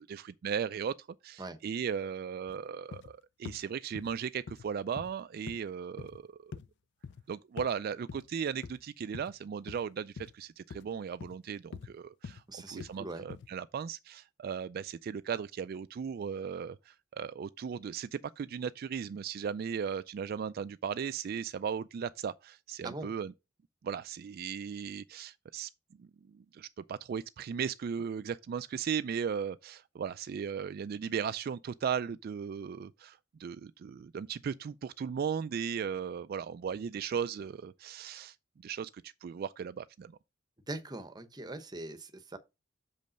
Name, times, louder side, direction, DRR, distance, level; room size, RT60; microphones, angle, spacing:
voice 1, 0.0-6.6 7.3-23.3 23.8-25.7 26.0-38.4 38.6-40.1, right 7 dB, 50° right, 0.3 m, -37 dB
sound 1, 2.5-2.6 2.9-3.1 3.5-3.6 4.0-4.1 4.5-4.7 5.0-5.1 5.5-5.6 6.0-6.2 6.5-6.7 7.0-7.2 7.6-7.7 8.1-8.3 8.6-8.8 9.1-9.4 9.7-9.8 10.2-10.3 10.7-10.9 11.2-11.4 11.7-11.9 12.2-12.4 12.8-13.0 13.3-13.5, left 5 dB, 65° left, 0.4 m, -44 dB
voice 2, 12.5-13.3 22.8-23.1 40.7-42.4, right 2 dB, 20° right, 0.9 m, -41 dB
6.4 x 5.3 x 5.2 m
head